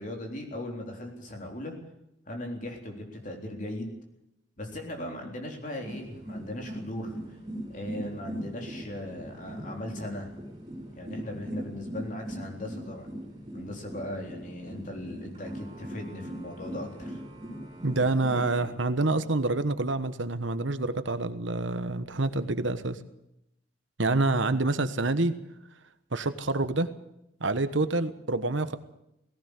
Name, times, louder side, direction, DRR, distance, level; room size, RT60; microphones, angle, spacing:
voice 1, 0.0-1.8 2.3-4.0 4.6-7.4 7.7-10.3 10.9-13.1 13.5-17.2, left 1 dB, 40° left, 2 dB, 3.8 m, -38 dB
sound 1, 5.8-18.7, equal, 25° right, 5.7 m, -40 dB
voice 2, 17.8-23.0 24.0-25.4 26.1-26.9 27.4-28.8, right 2 dB, 75° right, 11 dB, 1.3 m, -27 dB
18.5 x 17.0 x 8.3 m, 0.83 s
head